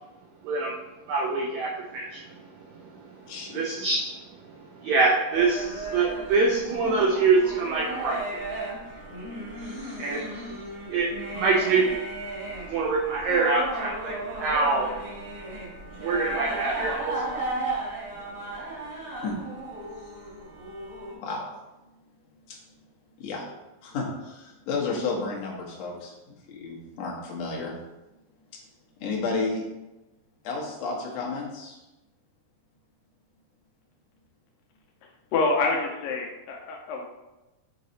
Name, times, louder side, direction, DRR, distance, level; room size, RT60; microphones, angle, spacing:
voice 1, 0.4-0.8 1.1-2.2 3.5-4.0 4.8-8.4 10.0-10.4 10.9-11.9 12.7-14.9 16.0-17.5, right 3 dB, 85° right, 0 dB, 1.6 m, -25 dB
voice 2, 3.3-3.6 9.6-10.2 19.2-19.4 20.0-20.2 21.2-21.5 22.5-22.6 23.2-23.5 23.8-26.1 26.5-27.7 29.0-29.6 30.4-31.8, left 4 dB, 60° left, -2 dB, 2.0 m, -32 dB
sound 1, 5.3-21.1, right 2 dB, 50° right, 1.5 m, -35 dB
voice 3, 35.3-37.0, left 3 dB, 85° left, 0 dB, 2.3 m, -26 dB
7.6 x 3.1 x 4.0 m, 1.0 s
omnidirectional pair, 4.0 m